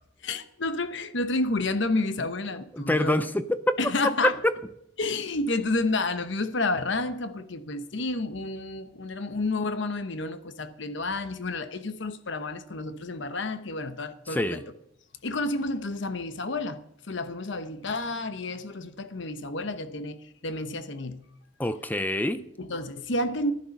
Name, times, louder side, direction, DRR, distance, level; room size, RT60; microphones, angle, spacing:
voice 1, 0.2-3.3 3.8-4.4 5.0-14.6 15.2-21.2 22.6-23.5, left 2 dB, 60° left, 1.0 m, -30 dB
voice 2, 2.7-3.8 4.4-4.5 14.3-14.6 21.6-22.4, left 1 dB, 10° left, 0.5 m, -26 dB
14.5 x 11.5 x 5.3 m
head